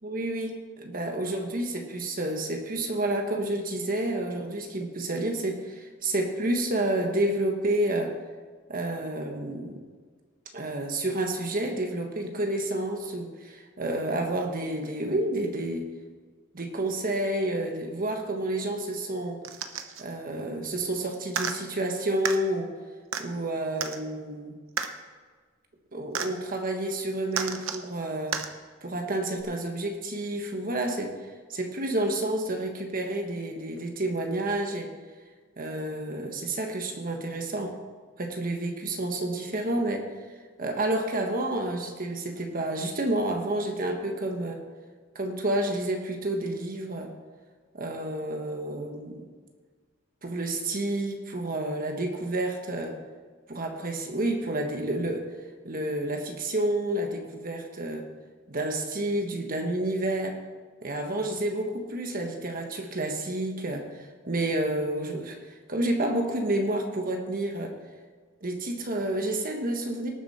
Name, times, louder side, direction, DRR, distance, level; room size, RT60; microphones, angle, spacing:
voice 1, 0.0-8.2 8.7-9.8 10.5-15.9 16.5-19.4 20.0-22.7 23.2-24.5 25.9-28.4 28.8-31.2 31.5-34.9 35.6-37.8 38.2-40.1 40.6-44.6 45.1-47.1 47.7-49.3 50.2-53.0 53.5-55.3 55.6-58.1 58.5-60.4 60.8-63.9 64.2-67.8 68.4-70.1, right 1 dB, 45° right, 3 dB, 1.4 m, -30 dB
sound 1, 19.4-20.0 21.3-21.6 22.3-22.4 23.1-23.2 23.8-24.0 24.8-24.9 26.2-26.3 27.3-27.8 28.3-28.5 29.4-29.5, right 7 dB, 85° right, 0.9 m, -31 dB
18.5 x 7.2 x 4.3 m, 1.5 s
head